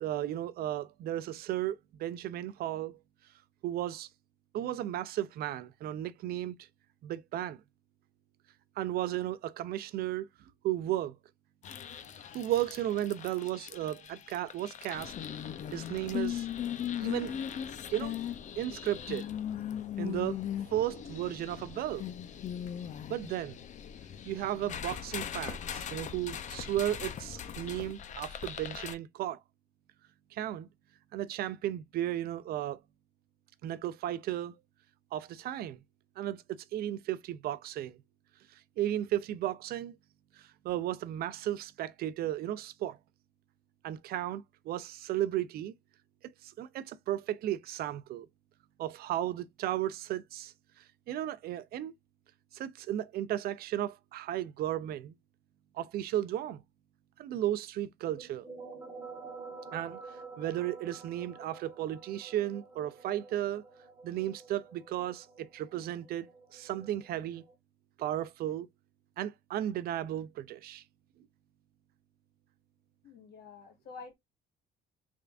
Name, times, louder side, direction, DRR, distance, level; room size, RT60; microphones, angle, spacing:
voice 1, 0.0-3.0 3.6-4.1 4.5-6.6 7.0-7.6 8.8-10.3 10.6-11.2 12.3-15.1 15.7-16.5 17.0-17.4 17.9-18.2 18.6-19.3 20.0-20.4 20.7-22.0 23.1-23.6 24.2-29.4 30.3-30.7 31.1-32.8 33.6-34.5 35.1-35.8 36.2-38.0 38.5-40.0 40.3-43.0 43.8-45.7 46.2-48.3 48.8-51.9 52.5-55.1 55.7-56.6 57.2-58.4 59.7-60.0 60.4-63.6 64.0-67.4 68.0-68.7 69.2-70.8, right 12 dB, 65° right, 0.5 m, -34 dB
sound 1, 11.6-28.9, left 9 dB, 45° left, 0.6 m, -39 dB
sound 2, 58.2-67.6, right 4 dB, 10° right, 1.3 m, -49 dB
voice 2, 73.0-74.1, left 4 dB, 70° left, 1.6 m, -48 dB
3.6 x 3.4 x 2.4 m
cardioid pair, 110°, 17 cm